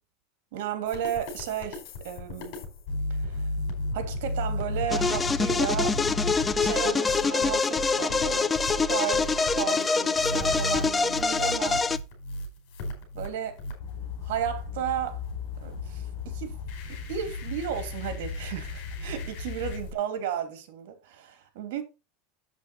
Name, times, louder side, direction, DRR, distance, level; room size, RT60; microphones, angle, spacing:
voice 1, 0.5-2.6 3.1-3.5 3.9-6.0 6.6-11.9 13.1-13.6 14.2-15.2 15.6-16.6 16.9-21.8, right 9 dB, 75° right, 2.7 m, -34 dB
sound 1, 0.9-19.9, left 2 dB, 55° left, 5.0 m, -35 dB
sound 2, 4.9-12.0, left 4 dB, 15° left, 0.5 m, -25 dB
8.1 x 7.8 x 4.3 m
supercardioid pair, 150°, 0 cm